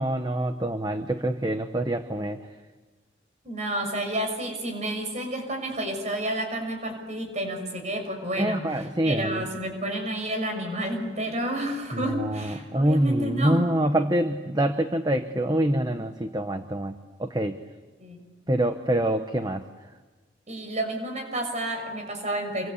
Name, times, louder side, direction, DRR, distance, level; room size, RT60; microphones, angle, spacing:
voice 1, 0.0-2.4 8.4-9.4 12.2-16.9 17.2-17.6 18.5-19.6, right 1 dB, 20° right, 8 dB, 1.0 m, -25 dB
voice 2, 3.4-13.7 18.0-18.2 20.5-22.7, right 1 dB, 35° right, 4 dB, 6.5 m, -30 dB
28.0 x 24.0 x 8.4 m, 1.3 s
head